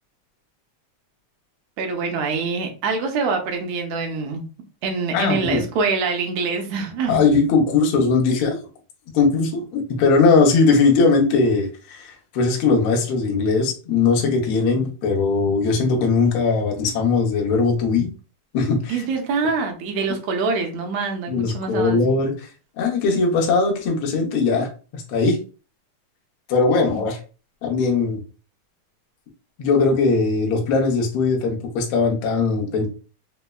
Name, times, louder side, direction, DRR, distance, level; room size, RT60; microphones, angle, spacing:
voice 1, 1.8-4.4 4.8-7.2 18.9-22.0, right 4 dB, 75° right, 4 dB, 1.6 m, -25 dB
voice 2, 5.1-5.6 7.1-8.6 9.1-18.1 18.5-19.0 21.3-22.5 22.8-24.7 24.9-25.4 26.5-27.2 27.6-28.2 29.6-32.9, left 4 dB, 85° left, 0 dB, 1.1 m, -19 dB
5.1 x 2.1 x 2.2 m, 0.35 s
omnidirectional pair, 3.6 m